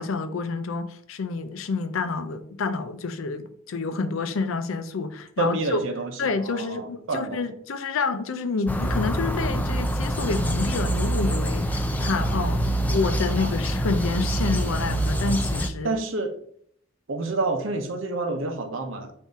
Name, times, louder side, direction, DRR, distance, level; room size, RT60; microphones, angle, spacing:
voice 1, 0.0-5.8 6.2-15.9, left 4 dB, 80° left, 0.5 m, -28 dB
voice 2, 5.4-7.4 13.4-13.5 15.8-16.3 17.1-19.1, right 3 dB, 70° right, 0.7 m, -28 dB
sound 1, 8.7-15.7, right 1 dB, 10° left, 0.3 m, -25 dB
3.9 x 2.7 x 3.5 m
head